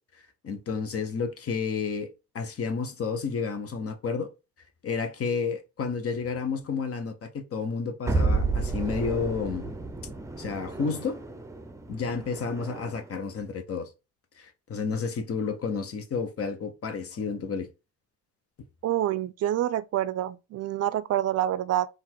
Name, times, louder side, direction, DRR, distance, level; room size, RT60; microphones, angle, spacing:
voice 1, 0.4-2.1 2.3-4.3 4.8-9.7 10.4-11.2 11.9-13.9 14.4-17.7, left 5 dB, 50° left, 0.9 m, -31 dB
sound 1, 8.1-13.2, right 3 dB, 10° right, 0.6 m, -31 dB
voice 2, 18.8-21.9, right 12 dB, 55° right, 0.4 m, -27 dB
3.8 x 2.5 x 4.5 m
cardioid pair, 90°, 30 cm